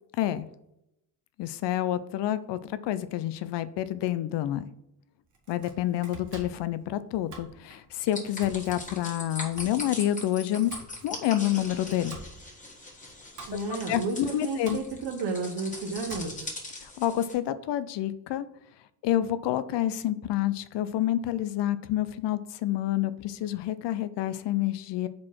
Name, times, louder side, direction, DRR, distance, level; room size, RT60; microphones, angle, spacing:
voice 1, 1.4-4.6 5.5-10.7 11.0-12.2 13.5-13.6 13.9-14.8 16.8-18.5 19.0-25.1, left 12 dB, 85° left, 14 dB, 0.6 m, -28 dB
Domestic sounds home sounds, 5.3-16.6, right 3 dB, 45° right, 1.7 m, -49 dB
sound 1, 8.1-17.3, left 2 dB, 20° left, 1.5 m, -41 dB
voice 2, 13.5-16.5, right 3 dB, 80° right, 2 dB, 0.9 m, -32 dB
4.8 x 4.1 x 5.8 m, 0.82 s
cardioid pair, 125°, 41 cm